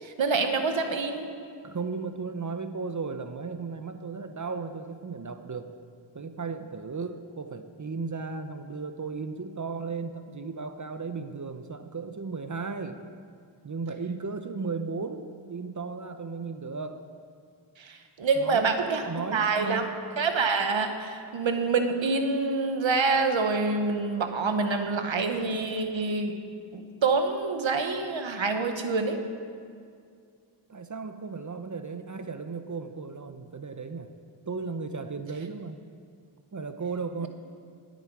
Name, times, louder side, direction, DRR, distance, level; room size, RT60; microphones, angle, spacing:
voice 1, 0.0-1.3 17.8-19.8 20.2-26.3 26.7-29.2, right 4 dB, 70° right, 6 dB, 1.3 m, -26 dB
voice 2, 1.6-5.7 6.1-13.0 13.6-17.0 18.4-18.8 19.1-19.9 30.7-34.1 34.5-35.8 36.5-37.3, right 4 dB, 40° right, 9 dB, 0.8 m, -35 dB
18.0 x 9.3 x 4.8 m, 2.2 s
wide cardioid pair, 60°, 47 cm